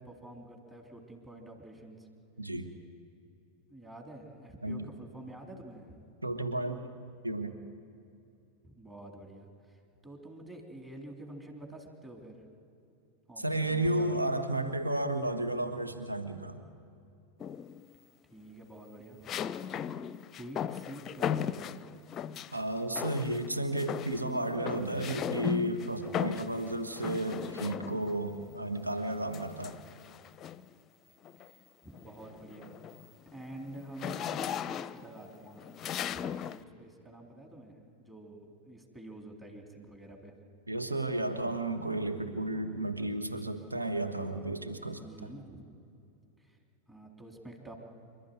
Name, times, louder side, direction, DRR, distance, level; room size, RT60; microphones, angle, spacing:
voice 1, 0.0-2.1 3.7-6.0 8.6-12.5 13.3-14.2 18.3-19.3 19.9-21.7 31.5-31.6 31.8-32.7 33.3-40.3 45.0-45.7 46.4-46.6 46.9-47.8, right 1 dB, 10° right, 1 dB, 3.7 m, -48 dB
voice 2, 2.4-2.7 4.6-4.9 6.2-6.9 7.2-7.6 13.4-16.6 22.5-29.8 40.7-45.1, right 1 dB, 80° right, 7 dB, 1.7 m, -33 dB
sound 1, 17.4-17.9 19.3-22.6 23.0-23.5 23.8-28.2 29.3-30.7 31.2-31.5 31.9-36.6, left 8 dB, 30° left, 0.6 m, -37 dB
28.0 x 12.5 x 9.5 m, 2.7 s
figure-of-eight pair, 90°, 0 cm